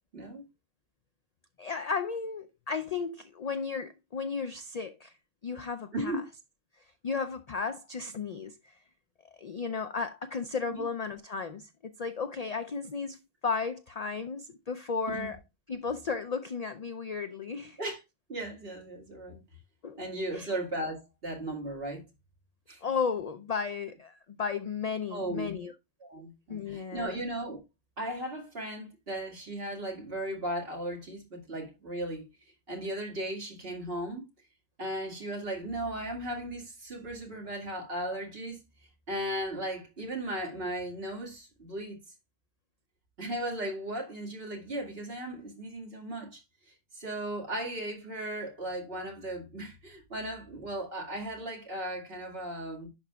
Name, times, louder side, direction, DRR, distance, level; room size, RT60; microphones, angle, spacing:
voice 1, 0.1-0.4 5.9-6.3 10.7-10.9 15.1-15.3 17.8-18.0 18.3-19.4 20.0-22.0 22.7-22.8 25.1-25.5 26.0-27.6 28.0-32.3 32.7-34.3 34.8-38.6 39.1-42.0 43.2-46.4 46.7-52.9, right 1 dB, 50° right, 2.2 m, -36 dB
voice 2, 1.6-5.1 5.4-6.2 7.0-8.8 9.4-15.4 15.7-17.8 19.8-20.0 20.3-20.5 22.8-25.7 26.5-27.2, left 5 dB, 75° left, 0.3 m, -34 dB
10.5 x 4.8 x 2.3 m
omnidirectional pair, 1.3 m